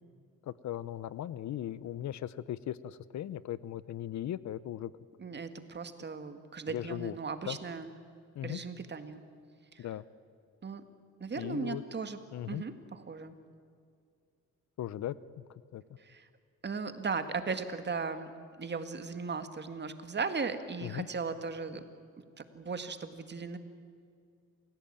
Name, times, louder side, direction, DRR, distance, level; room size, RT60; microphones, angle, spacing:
voice 1, 0.4-4.9 6.7-7.2 7.4-7.6 8.3-8.6 9.8-10.0 11.4-11.8 12.3-12.6 14.8-15.8 20.8-21.1, left 11 dB, 65° left, 18 dB, 0.8 m, -38 dB
voice 2, 5.2-7.9 8.4-9.2 9.7-9.9 10.6-10.8 11.2-12.2 12.5-13.3 16.0-16.3 16.6-18.3 18.6-21.8 22.4-23.6, right 4 dB, 35° right, 9 dB, 2.0 m, -37 dB
28.5 x 16.5 x 8.9 m, 2.3 s
cardioid pair, 90°, 30 cm